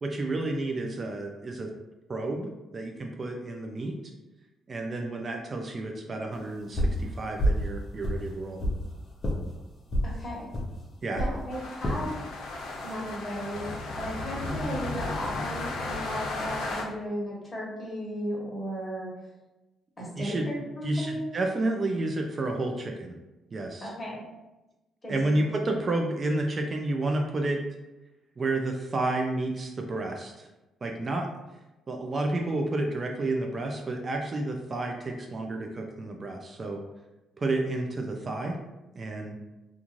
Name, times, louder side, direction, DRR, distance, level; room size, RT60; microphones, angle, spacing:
voice 1, 0.0-1.7 2.1-4.0 4.7-8.6 11.0-11.2 20.2-20.5 20.8-23.1 23.5-23.9 25.1-27.6 28.4-30.5 30.8-31.3 31.9-36.8 37.4-38.6 38.9-39.4, right 2 dB, 35° right, 2 dB, 0.3 m, -30 dB
sound 1, 6.7-7.0 7.4-7.7 8.0-8.8 9.2-9.4 9.9-10.1 10.5-10.7 11.1-11.3 11.8-12.0 12.6-12.9, equal, 40° left, 0.6 m, -27 dB
voice 2, 10.0-10.5 11.2-12.2 12.8-19.1 20.0-21.4 23.8-24.2 25.0-25.4, equal, 25° left, -4 dB, 1.1 m, -35 dB
sound 2, 11.5-16.8, left 2 dB, 85° left, 0.5 m, -34 dB
2.4 x 2.4 x 3.0 m, 1.0 s
cardioid pair, 90°, 0 cm